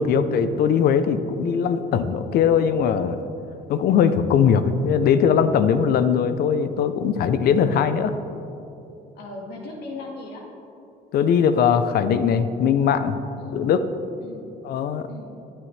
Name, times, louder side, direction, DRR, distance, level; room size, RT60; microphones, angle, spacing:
voice 1, 0.0-3.2 3.7-8.1 11.1-13.2 13.5-13.9 14.6-15.1, left 7 dB, 65° left, 11 dB, 0.7 m, -20 dB
voice 2, 9.2-10.5 13.4-13.6 14.2-14.5 15.1-15.3, left 3 dB, 80° left, 0 dB, 1.9 m, -37 dB
18.5 x 9.0 x 3.3 m, 2.8 s
cardioid pair, 110°, 17 cm